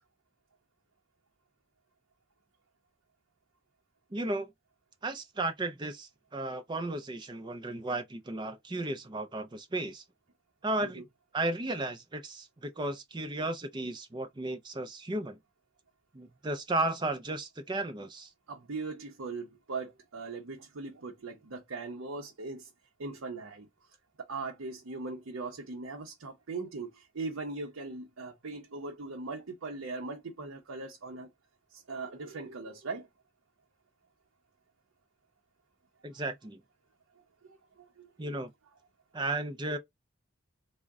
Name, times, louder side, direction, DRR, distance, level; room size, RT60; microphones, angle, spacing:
voice 1, 4.1-4.5 5.0-10.0 10.6-11.0 11.3-15.4 16.1-18.3 36.0-36.6 38.2-38.5 39.1-39.8, right 2 dB, 20° right, 0.4 m, -34 dB
voice 2, 18.5-22.7 23.0-23.7 24.2-31.3 31.7-33.1 38.0-38.3, right 3 dB, 80° right, 0.7 m, -40 dB
3.7 x 2.1 x 3.4 m
head